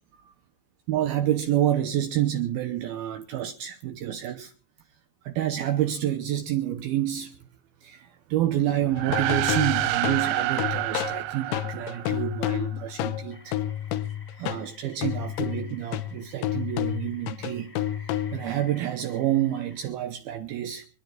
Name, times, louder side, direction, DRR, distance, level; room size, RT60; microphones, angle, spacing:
voice 1, 0.9-4.5 5.2-7.4 7.8-13.6 14.4-17.7 18.3-20.9, right 12 dB, 75° right, 2.5 m, -28 dB
sound 1, 8.9-12.6, right 15 dB, 90° right, 3.1 m, -28 dB
sound 2, 9.0-14.7 15.0-18.6, left 12 dB, 85° left, 3.2 m, -30 dB
sound 3, 13.3-19.9, left 2 dB, 30° left, 0.6 m, -53 dB
27.0 x 10.0 x 3.9 m
omnidirectional pair, 5.1 m